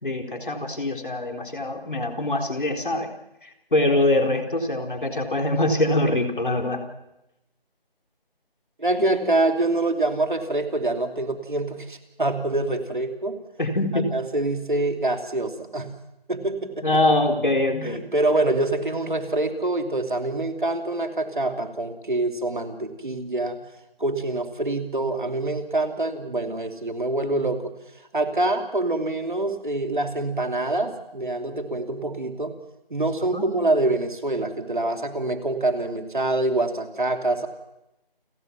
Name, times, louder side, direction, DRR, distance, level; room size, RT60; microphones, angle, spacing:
voice 1, 0.0-3.1 3.4-6.8 13.6-14.1 16.8-18.1 33.3-33.5, left 2 dB, 55° left, 3 dB, 4.1 m, -23 dB
voice 2, 8.8-13.4 13.9-15.9 16.3-16.9 17.8-23.6 24.0-27.7 28.1-32.5 32.9-37.5, right 2 dB, 55° right, 6 dB, 3.0 m, -25 dB
29.5 x 15.5 x 6.0 m, 0.89 s
figure-of-eight pair, 180°, 30 cm